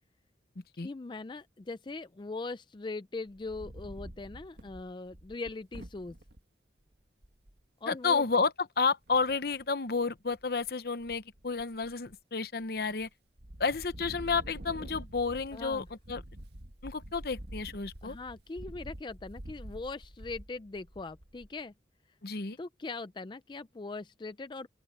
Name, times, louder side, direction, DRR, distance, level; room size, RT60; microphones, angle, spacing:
voice 1, 0.8-6.2 7.8-8.2 15.5-15.9 18.0-21.7 22.6-24.7, left 3 dB, 25° left, 0.4 m, -40 dB
Wind, 3.3-6.4 6.9-7.0 7.2-7.6 9.1-9.7 10.2-10.7 11.0-12.1 12.6-13.1 13.4-21.6, right 1 dB, 65° right, 1.9 m, -47 dB
voice 2, 7.9-13.1 13.6-16.2 16.8-18.2 22.2-22.6, left 4 dB, 60° left, 0.8 m, -31 dB
open air
head